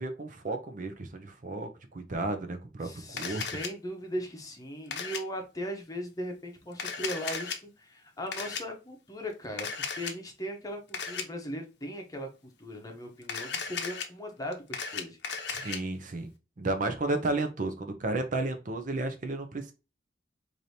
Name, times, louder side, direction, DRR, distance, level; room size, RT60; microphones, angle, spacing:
voice 1, 0.0-3.4 15.5-16.3 16.6-19.7, right 2 dB, 45° right, 7 dB, 0.5 m, -33 dB
voice 2, 2.8-15.2, equal, 20° left, 2 dB, 0.8 m, -38 dB
Camera, 3.2-3.7 4.9-5.2 6.7-7.6 8.3-8.6 9.6-10.1 10.9-11.2 13.2-14.1 14.5-15.8, left 6 dB, 70° left, 0.7 m, -35 dB
4.8 x 2.7 x 2.7 m, 0.30 s
head